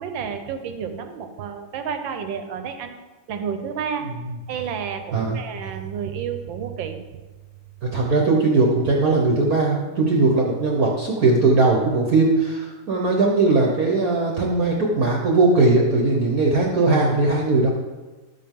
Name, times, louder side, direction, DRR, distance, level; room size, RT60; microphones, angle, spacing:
voice 1, 0.0-2.9 3.3-4.1 4.5-7.0, right 7 dB, 70° right, 7 dB, 1.5 m, -30 dB
voice 2, 7.9-17.7, right 3 dB, 50° right, -1 dB, 1.3 m, -19 dB
12.5 x 7.6 x 3.7 m, 1.2 s
omnidirectional pair, 2.3 m